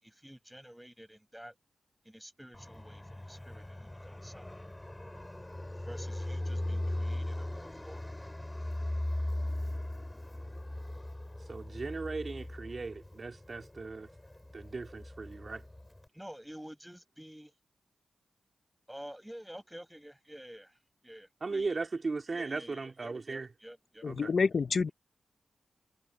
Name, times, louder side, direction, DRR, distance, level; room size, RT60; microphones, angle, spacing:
voice 1, 0.0-1.5 2.0-4.5 5.8-8.0 16.1-17.5 18.9-20.8 21.0-21.8 22.3-24.3, equal, 5° right, 8.0 m, -50 dB
Fixed-wing aircraft airplane, 2.5-16.0, left 1 dB, 15° left, 5.3 m, -39 dB
voice 2, 11.5-14.1 14.5-15.6 21.4-23.5 24.1-24.3, right 3 dB, 50° right, 2.8 m, -37 dB
voice 3, 24.0-24.9, left 5 dB, 65° left, 0.7 m, -28 dB
cardioid pair, 65°, 0 cm